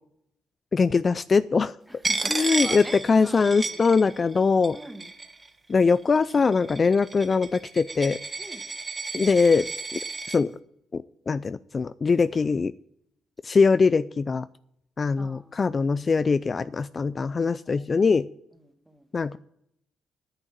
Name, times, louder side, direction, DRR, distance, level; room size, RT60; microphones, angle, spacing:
voice 1, 0.7-1.8 2.3-4.8 5.7-8.2 9.1-9.7 9.9-10.0 10.3-10.5 10.9-12.7 13.4-14.5 15.0-18.3 19.1-19.4, left 4 dB, 35° left, 15 dB, 0.4 m, -22 dB
voice 2, 1.9-3.8 4.7-5.1 8.4-8.7 15.2-15.7 17.7-17.8 18.6-19.1, right 1 dB, 5° right, 7 dB, 1.6 m, -44 dB
Coin (dropping), 2.0-4.4 4.6-5.5 6.2-10.4, right 3 dB, 25° right, 1.4 m, -32 dB
9.8 x 8.1 x 8.7 m, 0.74 s
cardioid pair, 90°, 0 cm